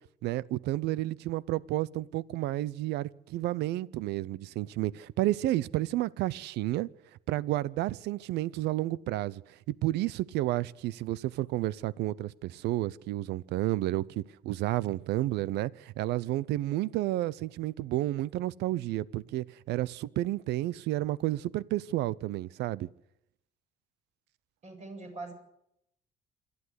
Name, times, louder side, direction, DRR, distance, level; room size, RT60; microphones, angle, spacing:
voice 1, 0.2-6.9 7.3-9.4 9.7-22.9, right 16 dB, 80° right, 0.7 m, -31 dB
voice 2, 24.6-25.3, right 3 dB, 45° right, 7.8 m, -42 dB
26.5 x 12.5 x 8.1 m
cardioid pair, 110°, 17 cm